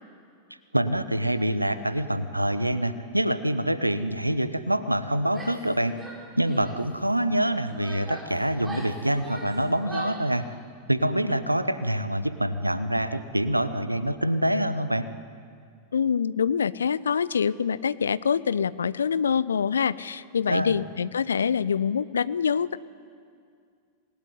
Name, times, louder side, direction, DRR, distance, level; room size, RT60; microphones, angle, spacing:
voice 1, 0.7-6.0 6.4-10.4 10.9-15.1 20.5-20.8, right 1 dB, 85° right, 13 dB, 1.1 m, -26 dB
Female speech woman speaking / Yell, 5.3-5.7 6.0-6.8 7.5-10.3, right 3 dB, 10° right, 5.7 m, -41 dB
voice 2, 15.9-22.8, left 7 dB, 70° left, 18 dB, 0.7 m, -25 dB
26.5 x 19.5 x 9.6 m, 2.2 s
figure-of-eight pair, 90°, 0 cm